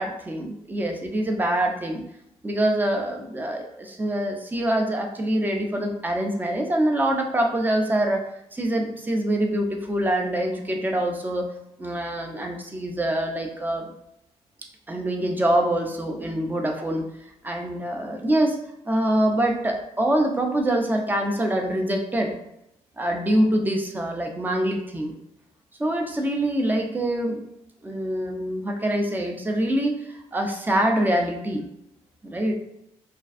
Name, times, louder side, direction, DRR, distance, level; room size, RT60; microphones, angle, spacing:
voice 1, 0.0-2.0 2.4-8.2 8.5-11.5 11.8-13.9 14.9-17.0 17.4-18.6 18.9-22.3 23.0-25.1 25.8-27.4 27.8-31.7 32.2-32.5, right 1 dB, 15° right, 2 dB, 0.4 m, -25 dB
2.4 x 2.2 x 2.4 m, 0.80 s
cardioid pair, 85°, 12 cm